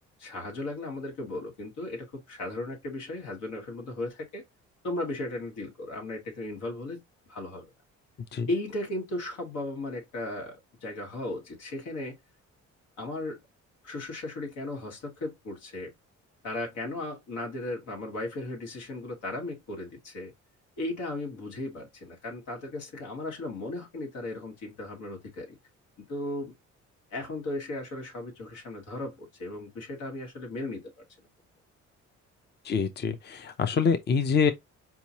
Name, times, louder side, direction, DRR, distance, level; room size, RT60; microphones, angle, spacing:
voice 1, 0.2-4.4 4.8-7.0 7.3-7.7 8.5-12.2 13.0-13.4 13.8-15.9 16.4-20.3 20.8-25.6 26.0-26.5 27.1-31.0, left 2 dB, 90° left, 1.8 m, -36 dB
voice 2, 32.7-34.5, left 6 dB, 35° left, 0.6 m, -25 dB
4.6 x 2.9 x 2.8 m
cardioid pair, 90°, 30 cm